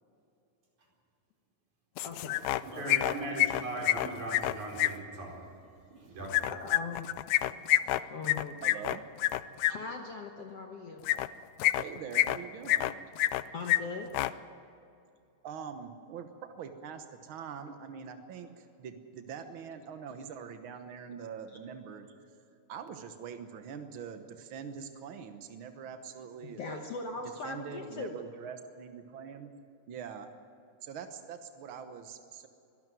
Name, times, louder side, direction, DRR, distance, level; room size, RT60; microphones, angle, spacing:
sound 1, 2.0-2.6 2.9-4.9 6.3-9.7 11.0-11.3 11.6-12.4 12.7-13.4 13.7-13.8 14.1-14.3, left 16 dB, 80° left, 1.8 m, -27 dB
voice 1, 2.0-2.4 2.7-3.0 6.5-7.1 8.1-8.6 9.7-11.0 13.5-14.1 26.4-28.2, left 4 dB, 60° left, 3 dB, 1.8 m, -40 dB
voice 2, 2.6-5.4 5.9-6.3, right 2 dB, 55° right, -1 dB, 5.7 m, -38 dB
voice 3, 8.6-9.0 11.8-13.0 15.4-22.1 22.7-26.8 27.4-29.5 29.9-30.3 30.8-32.5, right 7 dB, 85° right, 7 dB, 1.1 m, -44 dB
23.5 x 12.5 x 9.2 m, 2.6 s
omnidirectional pair, 4.0 m